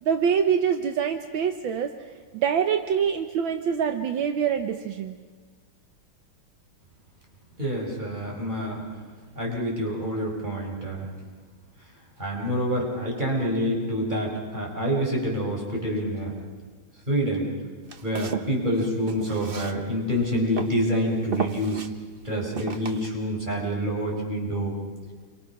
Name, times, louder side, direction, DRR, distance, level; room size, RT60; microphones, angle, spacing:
voice 1, 0.0-1.9 2.3-5.2, right 7 dB, 75° right, 7 dB, 1.7 m, -25 dB
voice 2, 7.6-8.8 9.3-11.1 12.2-16.4 17.1-17.5 18.0-21.8 22.2-24.7, equal, 20° right, -1 dB, 5.2 m, -27 dB
Walk footsteps, 17.8-20.2 20.6-20.9 21.3-21.9 22.6-23.1, right 6 dB, 40° right, 0.8 m, -33 dB
28.5 x 23.5 x 5.9 m, 1.5 s
omnidirectional pair, 2.2 m